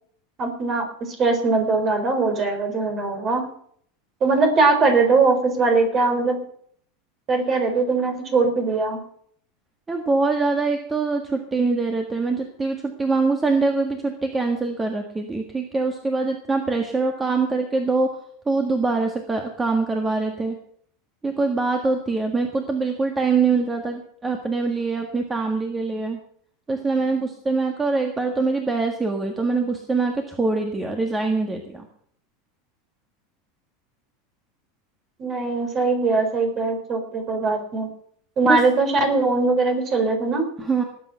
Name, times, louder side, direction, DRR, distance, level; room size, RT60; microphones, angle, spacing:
voice 1, 0.4-3.4 4.2-6.4 7.3-9.0 35.2-37.9 38.4-40.5, right 3 dB, 35° right, 6 dB, 3.9 m, -21 dB
voice 2, 9.9-18.1 18.5-20.5 21.2-26.2 26.7-31.9 38.5-38.6 40.6-40.8, right 3 dB, 15° right, 4 dB, 1.6 m, -23 dB
18.5 x 8.4 x 5.7 m, 0.63 s
supercardioid pair, 130°, 0 cm